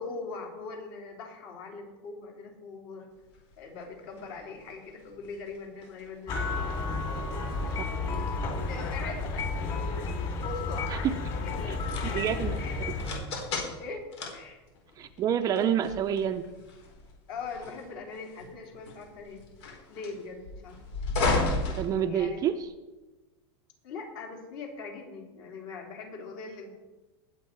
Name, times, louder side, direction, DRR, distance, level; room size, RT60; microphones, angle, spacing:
voice 1, 0.0-3.1 3.6-6.6 7.3-7.9 8.4-9.9 10.4-12.8 13.5-14.1 14.3-14.6 17.3-19.4 19.9-20.8 22.1-22.4 23.8-26.7, left 4 dB, 55° left, 1 dB, 3.6 m, -41 dB
sound 1, 3.3-22.6, left 3 dB, 80° left, 4.6 m, -37 dB
sound 2, 6.3-13.2, left 3 dB, 35° left, 3.3 m, -32 dB
voice 2, 7.8-8.3 11.0-11.1 11.7-11.8 12.0-12.9 15.0-16.4 21.8-22.5, right 9 dB, 25° right, 8 dB, 0.5 m, -28 dB
20.0 x 8.2 x 4.7 m, 1.1 s
supercardioid pair, 160°, 14 cm